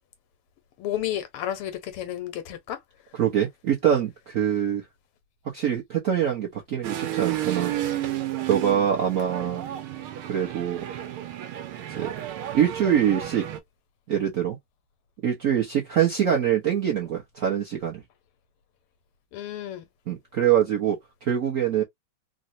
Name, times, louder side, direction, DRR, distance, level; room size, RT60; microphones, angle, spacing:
voice 1, 0.8-2.8 19.3-19.9, left 11 dB, 85° left, 1.7 m, -32 dB
voice 2, 3.1-4.8 5.5-7.7 8.5-9.6 10.3-10.9 11.9-12.1 12.5-13.5 14.1-14.6 15.2-18.0 20.1-21.8, right 9 dB, 70° right, 0.8 m, -24 dB
sound 1, 6.8-13.6, right 12 dB, 85° right, 1.6 m, -32 dB
4.0 x 2.0 x 2.6 m
omnidirectional pair, 2.4 m